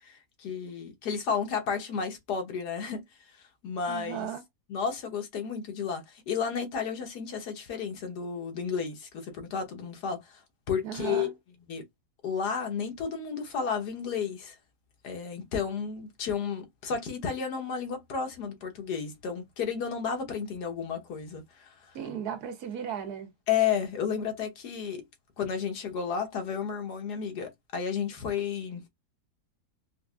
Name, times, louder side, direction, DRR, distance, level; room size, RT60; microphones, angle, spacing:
voice 1, 0.0-3.0 3.3-4.3 4.7-10.4 10.7-11.3 11.7-11.8 12.2-14.6 15.0-21.9 23.5-25.0 25.4-28.8, left 6 dB, 85° left, 1.6 m, -32 dB
voice 2, 3.9-4.4 10.8-11.3 21.9-23.3, right 9 dB, 75° right, 1.3 m, -35 dB
4.7 x 2.3 x 2.3 m
omnidirectional pair, 1.7 m